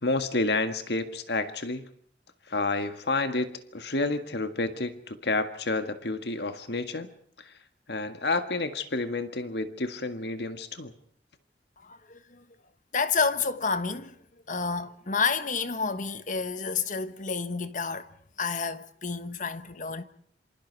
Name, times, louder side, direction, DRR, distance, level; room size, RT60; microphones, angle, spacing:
voice 1, 0.0-1.9 2.5-7.1 7.9-10.9, left 2 dB, 60° left, 1.8 m, -30 dB
voice 2, 11.8-12.4 12.9-14.2 14.5-18.1 18.4-20.0, left 5 dB, 45° left, 1.3 m, -30 dB
27.5 x 26.5 x 4.7 m
head